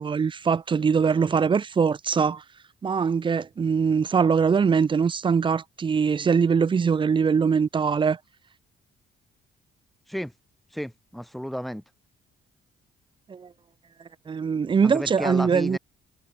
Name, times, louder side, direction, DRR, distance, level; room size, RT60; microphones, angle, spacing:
voice 1, 0.0-2.4 2.8-8.2 13.3-13.5 14.3-15.8, right 6 dB, 25° right, 0.4 m, -22 dB
voice 2, 10.7-11.8 14.8-15.8, equal, ahead, 1.5 m, -32 dB
cardioid pair, 90°, 20 cm